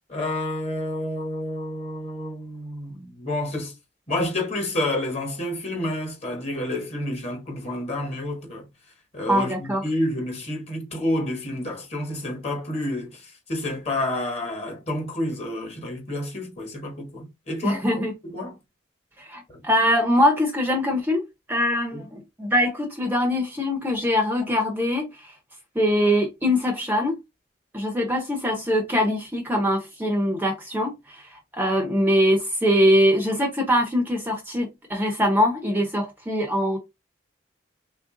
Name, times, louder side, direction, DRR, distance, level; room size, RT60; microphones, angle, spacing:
voice 1, 0.1-3.7 4.1-8.7 9.1-18.6 19.5-19.6 21.9-22.1, left 1 dB, 35° left, 1.2 m, -29 dB
voice 2, 9.3-9.8 17.6-18.1 19.2-21.2 21.5-25.1 25.7-27.1 27.7-31.2 31.5-36.8, equal, 10° right, 0.6 m, -22 dB
3.3 x 2.5 x 3.6 m
head